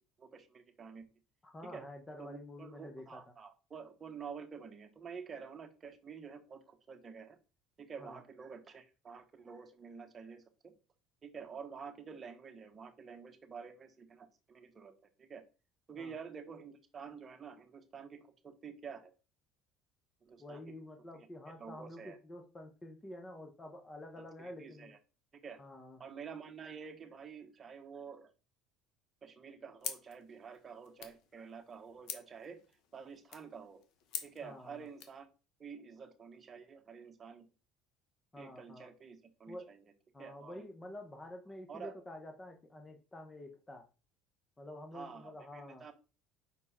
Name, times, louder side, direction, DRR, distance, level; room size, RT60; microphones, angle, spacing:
voice 1, 0.2-1.0 1.6-1.9 2.2-7.4 7.8-10.7 11.2-14.9 15.2-15.4 15.9-19.1 20.2-20.6 21.1-21.3 21.6-22.2 24.2-25.0 25.4-25.6 26.0-28.3 29.2-32.6 32.9-33.8 34.2-35.3 35.6-37.5 38.4-39.8 40.2-40.6 41.7-41.9 44.9-45.9, right 6 dB, 30° right, 5 dB, 1.1 m, -49 dB
voice 2, 1.4-3.2 8.0-8.2 15.9-16.2 20.4-24.9 25.6-26.0 34.4-34.9 38.3-38.9 39.5-39.7 40.1-43.8 44.6-45.9, left 1 dB, 15° left, 4 dB, 0.8 m, -49 dB
sound 1, 29.8-35.2, left 8 dB, 65° left, 1.1 m, -47 dB
5.5 x 4.5 x 4.2 m, 0.33 s
cardioid pair, 125°, 0 cm